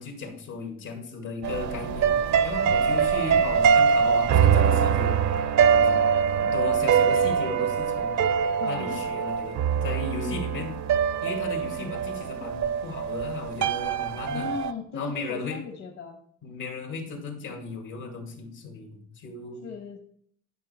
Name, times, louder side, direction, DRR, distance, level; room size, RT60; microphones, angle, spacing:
voice 1, 0.0-2.2 2.4-5.2 5.7-6.0 6.4-8.3 8.6-10.7 11.2-14.5 14.9-15.6 16.4-19.7, left 4 dB, 85° left, 3 dB, 2.4 m, -35 dB
sound 1, 1.4-14.7, right 7 dB, 65° right, 0.6 m, -23 dB
voice 2, 8.6-9.1 14.3-16.2 19.6-20.0, left 5 dB, 65° left, 3 dB, 1.2 m, -37 dB
11.0 x 5.5 x 4.3 m, 0.66 s
cardioid pair, 90°, 30 cm